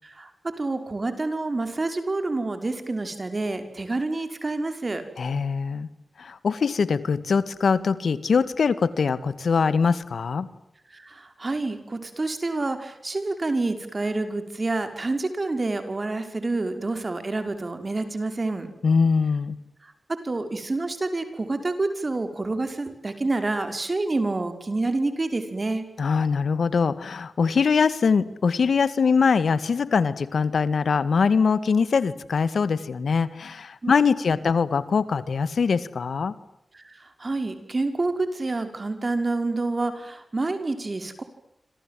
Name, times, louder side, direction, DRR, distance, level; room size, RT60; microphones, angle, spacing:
voice 1, 0.0-5.1 10.9-18.7 19.8-25.9 33.8-33.9 36.7-41.2, right 2 dB, 40° right, 8 dB, 5.6 m, -28 dB
voice 2, 5.2-5.9 6.2-10.5 18.8-19.6 26.0-36.3, left 5 dB, 85° left, 14 dB, 2.0 m, -22 dB
27.5 x 27.0 x 7.8 m, 0.77 s
cardioid pair, 60°, 0 cm